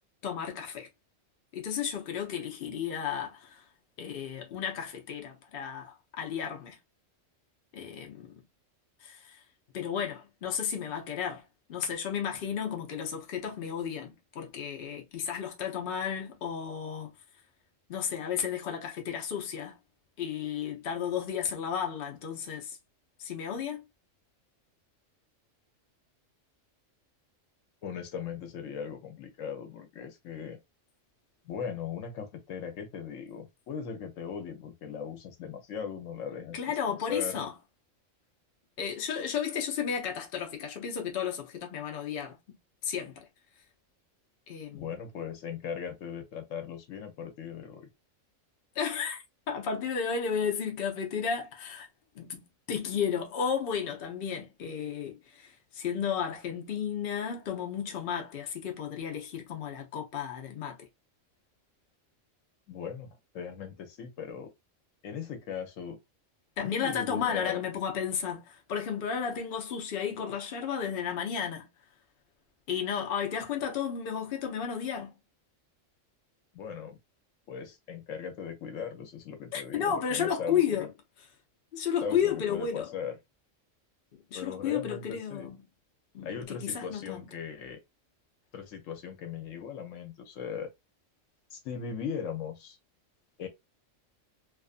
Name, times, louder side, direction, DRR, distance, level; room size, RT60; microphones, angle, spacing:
voice 1, 0.2-0.9 1.5-3.6 4.0-6.8 7.7-8.3 9.0-9.4 9.7-11.4 11.7-17.1 17.9-19.8 20.2-22.8 23.2-23.8 36.5-37.5 38.8-42.4 42.8-43.2 44.5-44.9 48.8-51.9 52.2-52.4 52.7-60.8 66.6-71.7 72.7-75.1 79.5-80.9 81.7-82.9 84.3-85.6 86.1-87.2, left 7 dB, 55° left, 0.8 m, -33 dB
voice 2, 27.8-30.6 31.4-36.6 36.9-37.4 44.7-47.9 62.7-64.5 65.0-66.0 66.6-67.6 76.5-77.0 77.5-80.9 82.0-83.1 84.3-85.5 86.2-87.8 88.5-90.7 91.5-92.8 93.4-93.5, left 7 dB, 80° left, 1.1 m, -38 dB
2.5 x 2.4 x 2.4 m
omnidirectional pair, 1.3 m